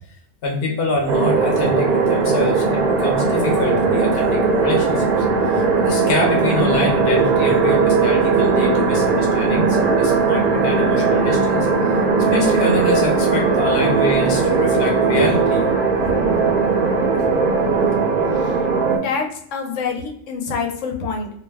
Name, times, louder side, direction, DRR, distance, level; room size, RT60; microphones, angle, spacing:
voice 1, 0.4-5.0 5.5-11.7 12.3-15.7 15.9-16.1, left 2 dB, 55° left, 1 dB, 0.9 m, -25 dB
sound 1, 1.1-19.0, right 4 dB, 55° right, 0.6 m, -18 dB
voice 2, 19.0-21.3, left 5 dB, 85° left, 3 dB, 1.0 m, -26 dB
2.6 x 2.1 x 3.3 m, 0.70 s
omnidirectional pair, 1.2 m